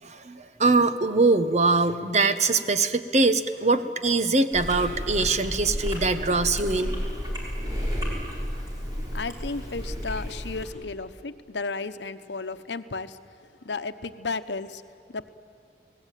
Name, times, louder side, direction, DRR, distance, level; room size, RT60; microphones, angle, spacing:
voice 1, 0.0-7.0, right 3 dB, 40° right, 10 dB, 1.1 m, -23 dB
Chewing mastication, 4.5-10.6, equal, 20° right, 5.7 m, -32 dB
voice 2, 9.1-13.2 13.6-14.8 15.1-15.3, left 3 dB, 90° left, 11 dB, 1.0 m, -33 dB
29.0 x 19.0 x 9.2 m, 2.3 s
head